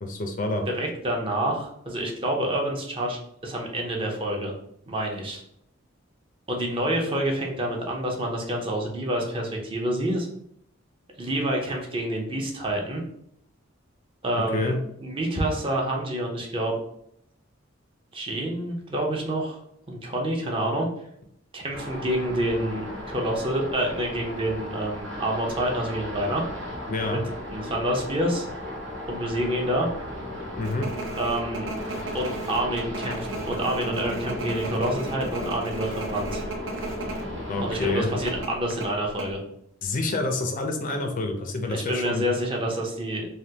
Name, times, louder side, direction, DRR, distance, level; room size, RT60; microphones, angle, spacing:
voice 1, 0.0-0.6 14.5-14.8 26.9-27.2 30.6-30.9 37.5-38.1 39.8-42.3, left 2 dB, 45° left, 5 dB, 0.4 m, -27 dB
voice 2, 0.7-4.5 4.9-5.4 6.5-10.3 11.1-13.0 14.2-14.7 15.0-16.8 18.1-19.6 19.9-20.9 21.5-26.5 27.1-27.2 27.5-28.5 29.1-29.9 31.2-31.7 32.1-36.4 37.6-39.4 41.7-43.3, right 1 dB, 30° right, 0 dB, 0.6 m, -28 dB
sound 1, 21.7-38.4, left 1 dB, 85° right, 1.3 m, -36 dB
sound 2, 30.6-37.2 37.5-37.7 38.3-39.3, right 2 dB, 70° right, 0.6 m, -35 dB
3.3 x 2.2 x 2.7 m, 0.73 s
head